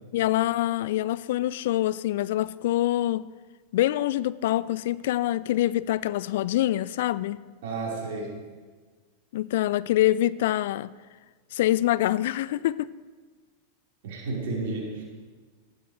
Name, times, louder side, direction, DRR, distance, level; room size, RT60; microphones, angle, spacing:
voice 1, 0.1-3.2 3.7-7.4 9.3-10.9 11.5-12.9, left 14 dB, 55° left, 0.3 m, -25 dB
voice 2, 7.6-8.3 14.0-15.0, right 3 dB, 50° right, 4.7 m, -32 dB
18.5 x 13.0 x 3.3 m
figure-of-eight pair, 90°, 0 cm